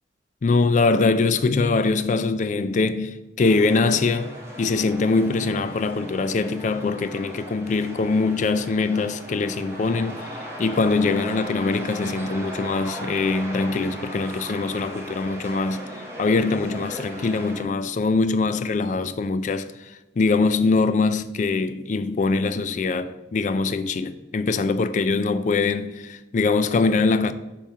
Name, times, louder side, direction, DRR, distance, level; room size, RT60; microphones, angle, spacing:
voice 1, 0.4-15.8 16.2-27.3, left 3 dB, 40° left, 0.3 m, -23 dB
sound 1, 3.4-17.6, equal, 15° right, 0.9 m, -37 dB
7.0 x 3.1 x 5.6 m
head